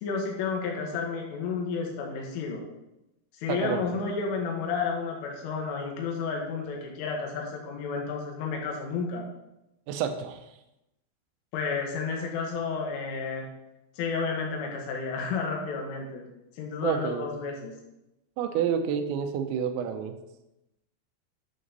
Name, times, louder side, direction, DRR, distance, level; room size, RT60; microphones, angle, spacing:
voice 1, 0.0-2.7 3.4-9.2 11.5-13.5 14.0-16.3 16.6-17.7, left 5 dB, 80° left, 0 dB, 4.1 m, -31 dB
voice 2, 3.5-3.8 9.9-10.4 16.8-17.3 18.4-20.1, right 8 dB, 80° right, 6 dB, 2.9 m, -29 dB
11.0 x 7.0 x 4.1 m, 0.92 s
omnidirectional pair, 5.7 m